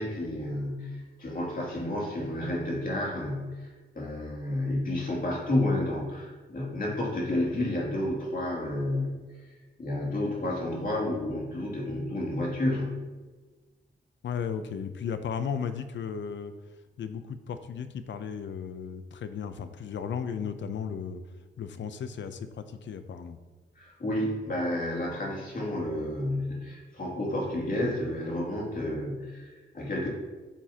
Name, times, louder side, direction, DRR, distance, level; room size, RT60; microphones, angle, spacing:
voice 1, 0.0-9.2 9.5-13.1 23.8-30.1, left 1 dB, 50° left, -3 dB, 2.7 m, -31 dB
voice 2, 14.2-16.5 17.0-21.2 21.6-23.4, left 7 dB, 85° left, 10 dB, 0.6 m, -35 dB
10.0 x 7.1 x 2.9 m, 1.3 s
cardioid pair, 90°, 19 cm